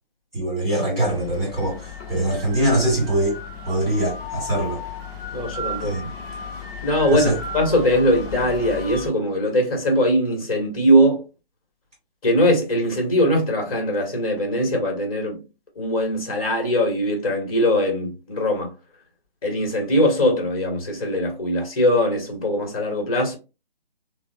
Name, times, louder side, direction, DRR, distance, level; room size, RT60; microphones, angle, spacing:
voice 1, 0.3-3.4 3.6-4.8 5.8-6.1 7.1-7.4, right 1 dB, 15° right, 1.4 m, -23 dB
sound 1, 1.0-9.1, left 3 dB, 20° left, 1.1 m, -34 dB
voice 2, 5.3-6.0 6.8-11.2 12.2-15.4 15.8-18.7 19.4-23.3, equal, 40° left, 1.2 m, -21 dB
3.7 x 2.0 x 2.7 m
figure-of-eight pair, 150°, 29 cm